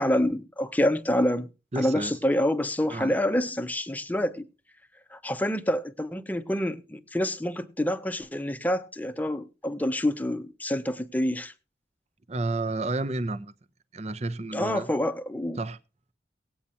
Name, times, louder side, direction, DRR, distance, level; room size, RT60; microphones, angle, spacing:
voice 1, 0.0-1.5 1.8-4.5 5.1-11.5 14.5-15.6, left 1 dB, 10° left, 0.7 m, -27 dB
voice 2, 1.7-2.1 2.9-3.1 12.3-13.5 13.9-14.9 15.6-15.8, right 2 dB, 35° right, 0.7 m, -31 dB
18.5 x 8.6 x 2.7 m
head